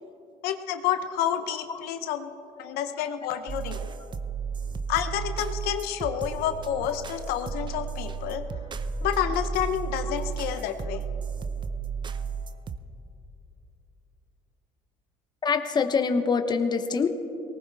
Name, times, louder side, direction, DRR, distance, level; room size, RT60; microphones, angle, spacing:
voice 1, 0.4-2.3 2.6-3.9 4.9-8.4 9.0-11.0, left 10 dB, 85° left, 8 dB, 0.8 m, -29 dB
sound 1, 3.5-12.8, right 5 dB, 30° right, 0.6 m, -33 dB
voice 2, 15.4-17.1, left 5 dB, 25° left, 7 dB, 0.9 m, -24 dB
19.5 x 18.5 x 3.5 m, 2.8 s
cardioid pair, 125°, 16 cm